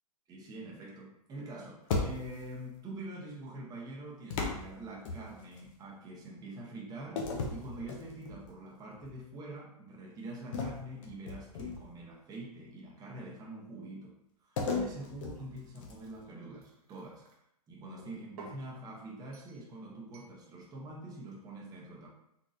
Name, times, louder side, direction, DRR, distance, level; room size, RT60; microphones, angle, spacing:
voice 1, 0.3-14.1 14.4-17.2 17.7-22.1, right 2 dB, 20° right, -2 dB, 0.8 m, -45 dB
sound 1, 1.9-2.6 4.3-5.7 7.2-8.5 9.0-9.2 10.5-12.0 14.6-16.2, left 4 dB, 50° left, 0.8 m, -36 dB
sound 2, 15.1-17.4 18.0-18.7 19.3-19.7 20.1-20.4, right 4 dB, 65° right, 1.0 m, -54 dB
4.0 x 2.8 x 2.5 m, 0.79 s
hypercardioid pair, 130°, 20 cm